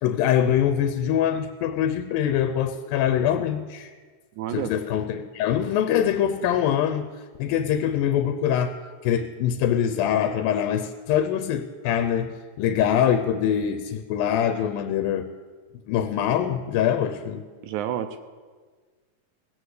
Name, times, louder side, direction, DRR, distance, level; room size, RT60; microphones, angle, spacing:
voice 1, 0.0-3.9 4.5-7.1 7.4-8.8 9.0-15.3 15.9-17.4, left 9 dB, 85° left, 9 dB, 2.4 m, -24 dB
voice 2, 4.4-4.7 17.6-18.2, right 10 dB, 80° right, 9 dB, 1.8 m, -29 dB
16.5 x 8.0 x 8.1 m, 1.5 s
omnidirectional pair, 4.0 m